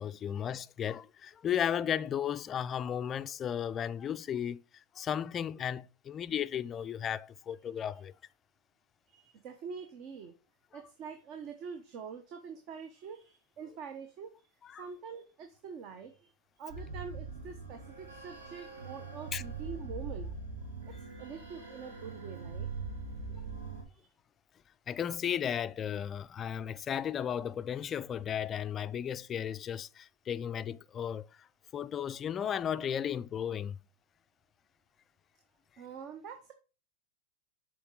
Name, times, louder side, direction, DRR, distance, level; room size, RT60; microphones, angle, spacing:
voice 1, 0.0-8.1 14.6-14.9 19.3-19.4 24.9-31.5 31.7-33.8, left 9 dB, 30° left, 0.3 m, -35 dB
voice 2, 9.1-10.3 10.7-14.3 14.6-16.3 16.6-20.3 21.2-22.7 23.9-24.1 35.8-36.5, right 6 dB, 50° right, 0.9 m, -45 dB
sound 1, 16.7-23.8, right 4 dB, 80° right, 2.1 m, -42 dB
6.9 x 4.3 x 3.8 m
hypercardioid pair, 105°, 0 cm